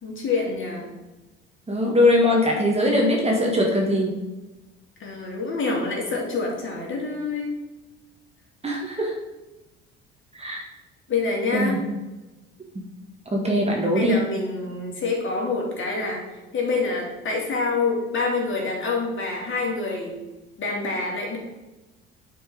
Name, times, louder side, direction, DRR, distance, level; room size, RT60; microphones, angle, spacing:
voice 1, 0.0-0.9 5.0-7.6 11.1-11.8 13.9-16.2 16.5-20.2 20.6-21.4, left 3 dB, 35° left, -1 dB, 2.8 m, -26 dB
voice 2, 1.7-4.1 8.6-9.1 10.4-10.6 11.5-11.8 13.3-14.2, left 1 dB, 20° right, 0 dB, 1.8 m, -21 dB
8.8 x 4.6 x 5.2 m, 1.1 s
figure-of-eight pair, 60°, 32 cm